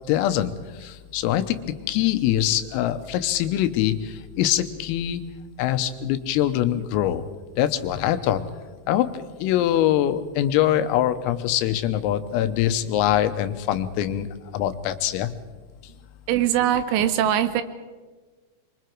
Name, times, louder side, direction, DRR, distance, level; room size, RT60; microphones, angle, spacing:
voice 1, 0.1-0.5 0.8-1.6 1.8-5.3 5.6-7.2 7.6-8.4 8.9-14.3 14.5-15.3, left 12 dB, 85° left, 10 dB, 3.7 m, -23 dB
voice 2, 16.3-17.6, right 11 dB, 80° right, 10 dB, 3.1 m, -21 dB
25.0 x 24.0 x 4.6 m, 1.3 s
omnidirectional pair, 5.9 m